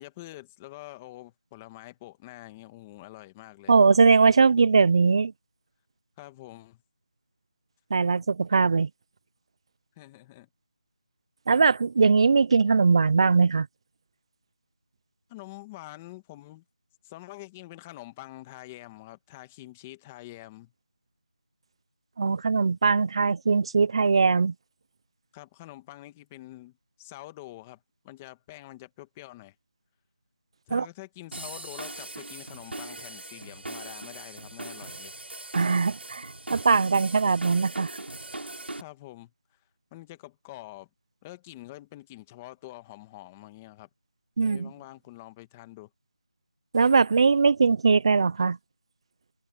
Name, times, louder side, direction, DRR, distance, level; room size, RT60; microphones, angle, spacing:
voice 1, 0.0-3.7 6.2-6.8 10.0-10.5 15.3-16.6 17.0-20.7 25.3-29.5 30.7-35.1 38.7-39.3 39.9-40.9 41.2-43.9 44.4-45.9, left 18 dB, 10° left, 1.5 m, -46 dB
voice 2, 3.7-5.3 7.9-8.9 11.5-13.7 22.2-24.5 30.7-30.9 35.5-37.9 44.4-44.7 46.7-48.6, right 4 dB, 30° right, 0.6 m, -21 dB
sound 1, 31.3-38.8, right 2 dB, 85° right, 5.6 m, -40 dB
figure-of-eight pair, 170°, 6 cm